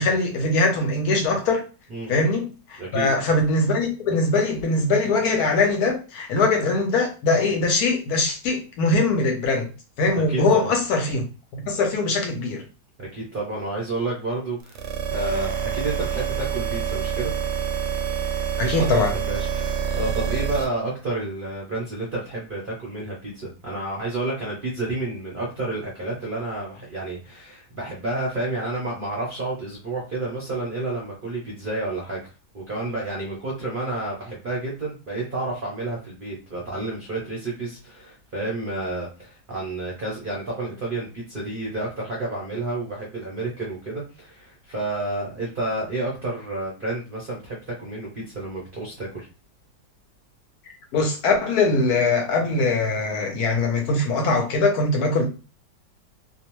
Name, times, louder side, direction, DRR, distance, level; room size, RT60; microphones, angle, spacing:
voice 1, 0.0-1.6 2.1-9.7 10.0-11.3 11.5-12.6 18.6-19.1 50.9-55.2, left 3 dB, 70° left, 1.1 m, -22 dB
voice 2, 2.8-3.1 10.3-10.7 13.0-17.3 18.6-49.3, right 2 dB, 50° right, 0.6 m, -30 dB
sound 1, 14.7-20.6, right 7 dB, 75° right, 1.1 m, -27 dB
2.8 x 2.0 x 3.0 m
omnidirectional pair, 1.8 m